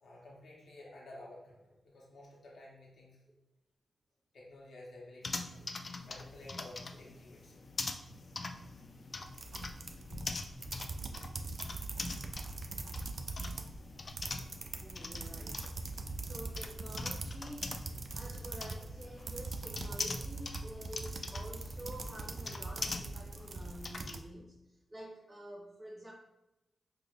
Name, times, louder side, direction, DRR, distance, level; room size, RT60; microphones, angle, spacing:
voice 1, 0.0-3.2 4.3-5.6 6.1-7.6 12.6-12.8, left 1 dB, 70° left, -3 dB, 0.9 m, -53 dB
sound 1, 5.2-24.2, left 3 dB, 50° left, 0.3 m, -44 dB
sound 2, 9.3-13.8 14.0-24.2, right 3 dB, 55° right, 0.3 m, -42 dB
voice 2, 14.2-17.7 18.1-26.1, right 1 dB, 15° right, -5 dB, 0.6 m, -49 dB
4.8 x 2.4 x 2.3 m, 0.92 s
cardioid pair, 65°, 0 cm